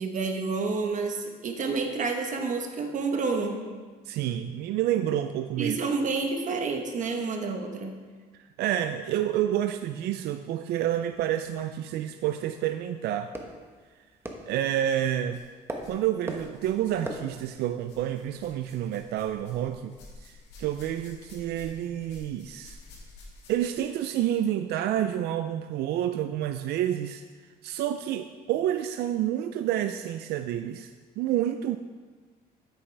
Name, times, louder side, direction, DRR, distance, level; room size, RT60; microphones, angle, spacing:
voice 1, 0.0-3.6 5.6-7.9, right 4 dB, 50° right, 4 dB, 1.1 m, -29 dB
voice 2, 4.1-5.8 8.6-13.3 14.5-15.4 15.9-19.9 20.2-22.8 23.5-27.2 27.6-30.9 31.2-31.8, right 11 dB, 70° right, 8 dB, 0.4 m, -29 dB
sound 1, 10.8-19.6, right 1 dB, 15° right, 1.1 m, -44 dB
sound 2, 14.4-14.5 15.3-16.0 16.3-24.1 25.0-25.1 25.9-26.0, left 3 dB, 90° left, 2.5 m, -51 dB
9.6 x 8.8 x 3.3 m, 1.4 s
cardioid pair, 110°, 17 cm